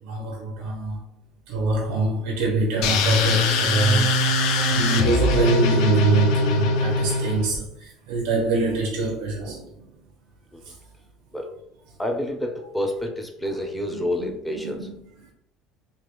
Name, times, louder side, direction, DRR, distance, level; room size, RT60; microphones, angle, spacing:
voice 1, 0.0-1.0 1.5-4.1 4.7-10.0 10.6-10.7 13.9-15.3, right 3 dB, 90° right, 0.5 m, -25 dB
sound 1, 2.8-7.6, left 3 dB, 70° left, 0.4 m, -21 dB
voice 2, 12.0-14.8, left 1 dB, 5° left, 0.5 m, -28 dB
3.3 x 2.3 x 3.0 m
cardioid pair, 135°, 0 cm